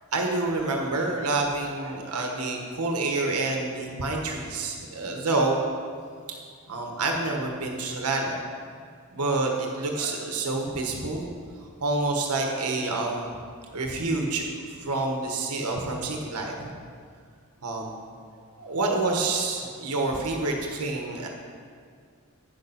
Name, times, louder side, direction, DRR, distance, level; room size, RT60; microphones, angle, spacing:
voice 1, 0.1-5.6 6.7-8.4 9.1-11.3 11.8-13.4 13.7-16.7 17.6-18.0 18.6-21.3, right 2 dB, 80° right, 1 dB, 1.3 m, -28 dB
9.5 x 6.9 x 5.8 m, 2.1 s
head